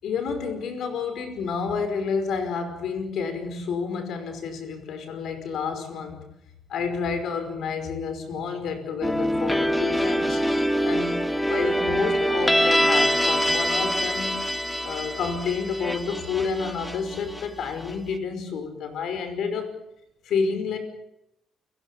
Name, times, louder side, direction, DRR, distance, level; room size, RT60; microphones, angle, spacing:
voice 1, 0.0-6.3 6.7-10.4 10.8-14.4 14.8-19.7 20.2-20.8, left 5 dB, 75° left, 9 dB, 5.3 m, -30 dB
sound 1, 9.0-17.9, equal, 5° left, 2.1 m, -24 dB
29.5 x 16.5 x 8.7 m, 0.84 s
cardioid pair, 90°, 0 cm